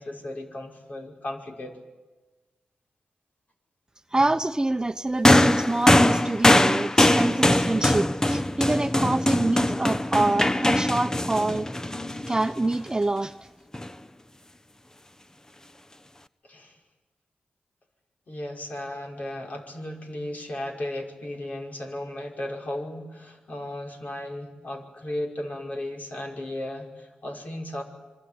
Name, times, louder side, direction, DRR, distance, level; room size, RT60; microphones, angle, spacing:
voice 1, 0.0-1.8 16.4-16.8 18.3-27.8, left 1 dB, 55° left, 2 dB, 5.6 m, -35 dB
voice 2, 4.1-11.7 12.3-13.3, right 2 dB, 25° right, 10 dB, 1.1 m, -26 dB
sound 1, 5.2-12.8 13.7-13.9, left 1 dB, 20° left, 1.1 m, -21 dB
26.0 x 23.5 x 9.7 m, 1.2 s
supercardioid pair, 45°, 3 cm